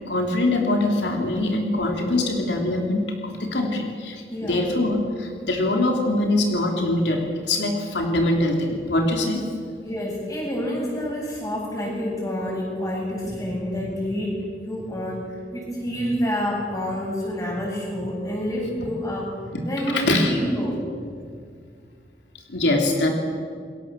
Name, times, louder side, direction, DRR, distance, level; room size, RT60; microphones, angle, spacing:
voice 1, 0.1-9.5 19.5-19.6 19.9-20.3 22.5-23.1, left 1 dB, 85° left, 2 dB, 3.2 m, -23 dB
voice 2, 4.3-4.8 9.8-14.4 14.7-19.3 19.6-21.0, equal, 20° left, -2 dB, 7.8 m, -28 dB
28.5 x 22.0 x 7.5 m, 2.1 s
head